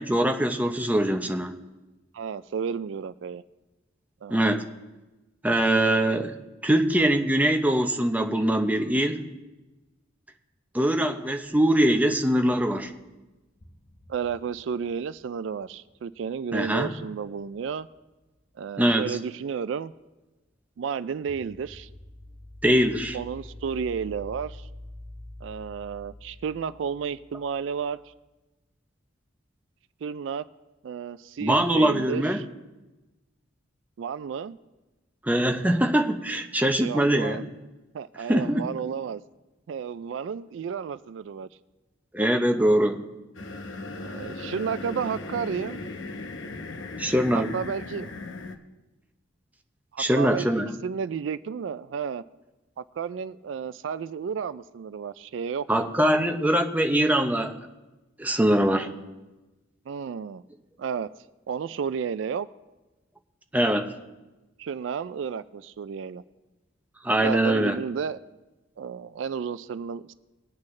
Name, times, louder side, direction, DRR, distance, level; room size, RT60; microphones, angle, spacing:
voice 1, 0.0-1.5 4.3-4.6 5.4-6.3 6.6-9.2 10.7-12.9 16.5-16.9 18.8-19.2 22.6-23.2 31.4-32.4 35.2-37.5 38.3-38.7 42.1-43.0 47.0-47.5 50.0-50.7 55.7-57.6 58.2-58.9 63.5-63.9 67.0-67.8, right 1 dB, 10° right, 5 dB, 0.7 m, -23 dB
voice 2, 2.1-3.4 4.2-4.4 14.1-17.9 18.6-19.9 20.8-21.9 23.1-24.7 25.4-28.0 30.0-30.4 30.8-32.4 34.0-34.6 36.8-37.4 37.9-39.2 39.7-41.5 44.0-45.8 47.3-48.1 49.9-52.2 52.8-55.9 59.9-60.4 60.8-61.1 61.5-62.5 64.6-66.2 67.2-68.2 68.8-70.1, right 6 dB, 70° right, 15 dB, 0.3 m, -32 dB
sound 1, 13.1-13.2 13.6-18.0 21.1-28.2, left 1 dB, 60° left, 1.6 m, -47 dB
sound 2, 43.3-48.5, left 2 dB, 80° left, 0.9 m, -37 dB
20.5 x 8.4 x 3.2 m, 1.1 s
head